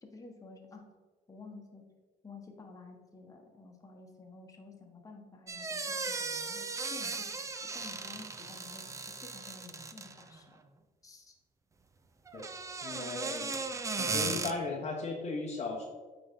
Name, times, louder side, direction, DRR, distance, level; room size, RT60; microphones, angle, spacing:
voice 1, 0.0-0.9 1.3-1.8 2.2-10.6 11.0-11.4, left 3 dB, 20° left, 2 dB, 1.2 m, -51 dB
sound 1, 5.5-10.3 12.3-14.5, right 4 dB, 20° right, 0.4 m, -37 dB
voice 2, 12.8-13.6 14.0-15.8, left 3 dB, 40° left, 0 dB, 0.9 m, -36 dB
8.7 x 4.0 x 3.6 m, 1.4 s
cardioid pair, 110°, 17 cm